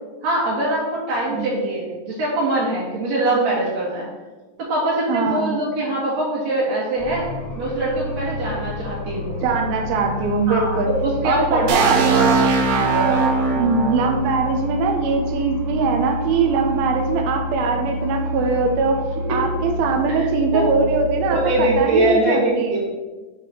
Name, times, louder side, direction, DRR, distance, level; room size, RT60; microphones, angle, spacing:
voice 1, 0.2-4.1 4.6-7.3 7.6-9.4 10.5-12.4 12.7-13.2 20.1-20.3 20.5-20.6 21.3-22.8, right 1 dB, 55° right, -7 dB, 2.3 m, -23 dB
voice 2, 1.3-1.6 5.1-5.5 9.4-10.9 11.2-12.0 13.6-19.0 19.3-22.8, right 4 dB, 90° right, 3 dB, 2.8 m, -21 dB
sound 1, 7.0-21.7, left 2 dB, 35° left, 2.8 m, -29 dB
sound 2, 11.7-15.5, right 5 dB, 75° right, 1.8 m, -21 dB
7.6 x 4.3 x 5.7 m, 1.2 s
omnidirectional pair, 4.2 m